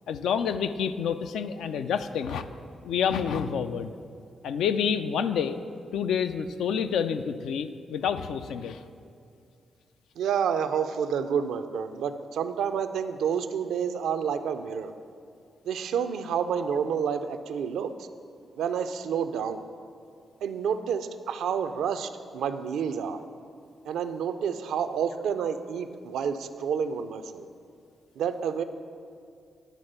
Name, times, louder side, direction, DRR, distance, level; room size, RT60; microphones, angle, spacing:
voice 1, 0.1-2.5 2.8-3.9 4.4-5.6 5.9-8.8, left 7 dB, 80° left, 10 dB, 0.3 m, -28 dB
voice 2, 10.2-14.9 15.7-17.9 18.6-19.6 20.4-23.2 23.9-27.5 28.2-28.6, right 7 dB, 80° right, 10 dB, 0.4 m, -29 dB
10.5 x 3.6 x 6.6 m, 2.4 s
supercardioid pair, 45°, 0 cm